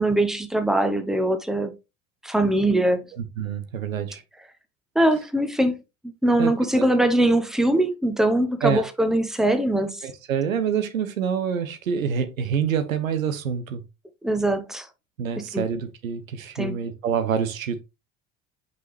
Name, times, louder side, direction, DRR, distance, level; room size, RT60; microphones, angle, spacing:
voice 1, 0.0-1.7 2.2-3.1 4.9-5.8 6.2-10.0 14.2-14.9 15.4-15.7 16.5-16.8, right 1 dB, ahead, 1.1 m, -22 dB
voice 2, 3.4-4.2 6.4-6.9 8.6-8.8 10.0-13.8 15.2-17.8, right 7 dB, 85° right, 1.0 m, -26 dB
5.7 x 5.3 x 3.3 m
hypercardioid pair, 65°, 40 cm